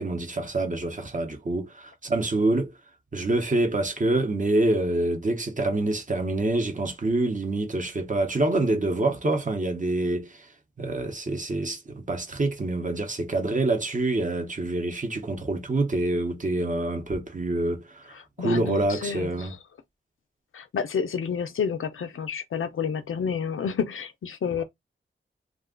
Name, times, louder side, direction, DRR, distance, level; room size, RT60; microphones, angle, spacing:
voice 1, 0.0-2.8 3.1-10.5 10.8-19.5 24.6-24.7, right 2 dB, 40° right, 0.9 m, -26 dB
voice 2, 18.4-19.5 20.5-24.6, left 6 dB, 80° left, 0.5 m, -29 dB
2.5 x 2.3 x 3.7 m
wide cardioid pair, 90°, 21 cm